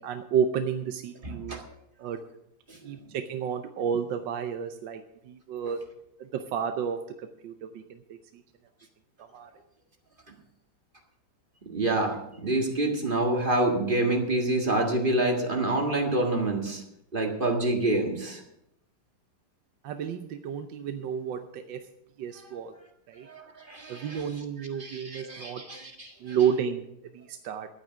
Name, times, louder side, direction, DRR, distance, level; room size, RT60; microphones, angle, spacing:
voice 1, 0.0-1.6 2.0-2.2 2.8-5.0 5.3-5.8 6.2-8.2 9.3-9.5 19.8-21.8 22.2-22.7 23.1-23.3 23.9-25.6 26.2-26.8 27.1-27.7, right 7 dB, 75° right, 7 dB, 1.4 m, -31 dB
voice 2, 1.2-1.6 2.7-2.8 11.7-16.8 17.1-18.4 23.2-26.4, right 2 dB, 30° right, 2 dB, 1.8 m, -27 dB
12.0 x 9.6 x 6.2 m, 0.78 s
omnidirectional pair, 2.1 m